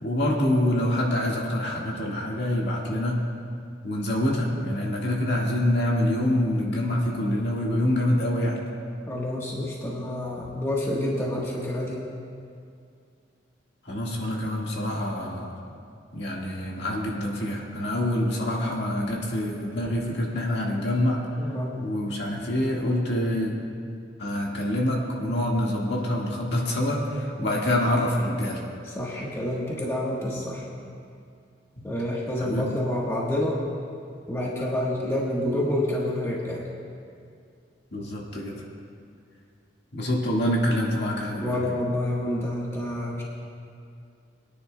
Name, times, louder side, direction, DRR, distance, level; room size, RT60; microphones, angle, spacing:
voice 1, 0.0-3.2 3.8-8.6 13.8-15.5 16.1-21.2 21.7-23.5 24.2-28.6 31.8-31.9 32.4-32.7 37.9-38.6 39.9-41.8, left 1 dB, 65° left, -3 dB, 1.8 m, -26 dB
voice 2, 9.1-12.0 21.4-21.7 28.8-30.7 31.8-33.6 34.3-36.6 41.4-43.2, left 1 dB, 15° left, -4 dB, 1.3 m, -28 dB
22.5 x 9.9 x 2.3 m, 2.3 s
head